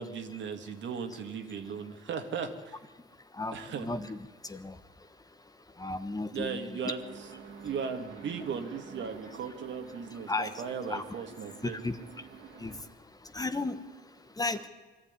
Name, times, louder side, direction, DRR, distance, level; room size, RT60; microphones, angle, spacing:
voice 1, 0.0-2.8 3.5-3.9 6.3-7.3 7.6-11.8, right 6 dB, 70° right, 5 dB, 2.4 m, -37 dB
voice 2, 3.3-4.8 5.8-6.8 10.3-10.6 10.9-11.0 11.6-12.0 12.6-12.8 13.3-13.8 14.4-14.6, left 3 dB, 20° left, 10 dB, 1.3 m, -34 dB
sound 1, 7.0-12.8, right 6 dB, 85° right, 3.6 m, -49 dB
23.5 x 13.0 x 9.8 m, 1.3 s
cardioid pair, 90°, 20 cm